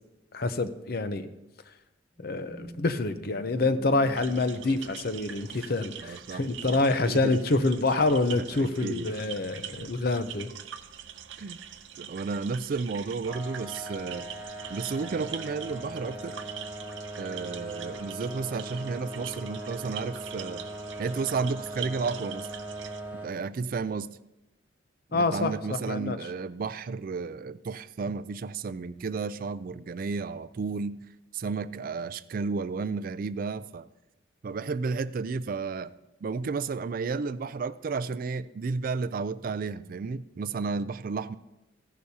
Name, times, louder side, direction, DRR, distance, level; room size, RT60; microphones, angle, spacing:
voice 1, 0.3-1.3 2.2-10.5 25.1-26.2, left 2 dB, 50° left, 11 dB, 0.7 m, -27 dB
sound 1, 2.1-6.3, equal, 80° left, 4.4 m, -48 dB
sound 2, 4.1-23.0, right 9 dB, 75° right, 0.7 m, -44 dB
voice 2, 6.0-6.8 7.1-7.4 8.4-9.1 9.8-9.9 11.4-11.6 12.0-14.3 14.7-16.4 17.2-20.6 21.0-22.5 23.2-24.2 25.1-31.0 31.3-33.9 34.4-35.9 36.2-41.4, right 4 dB, 50° right, 15 dB, 0.3 m, -32 dB
sound 3, 13.3-23.3, right 1 dB, 10° right, 1.2 m, -40 dB
15.0 x 11.0 x 2.8 m, 0.95 s
head